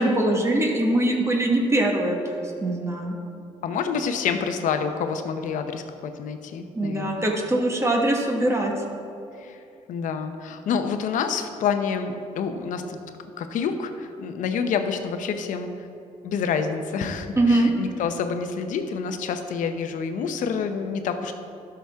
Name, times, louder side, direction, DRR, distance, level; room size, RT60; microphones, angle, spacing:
voice 1, 0.0-3.2 6.7-8.7 17.4-17.7, right 1 dB, 20° right, 0 dB, 1.4 m, -22 dB
voice 2, 3.6-7.3 9.4-9.6 9.9-13.0 13.4-15.9 16.2-21.3, left 6 dB, 70° left, 7 dB, 0.8 m, -28 dB
12.0 x 6.0 x 3.5 m, 2.8 s
supercardioid pair, 75°, 14 cm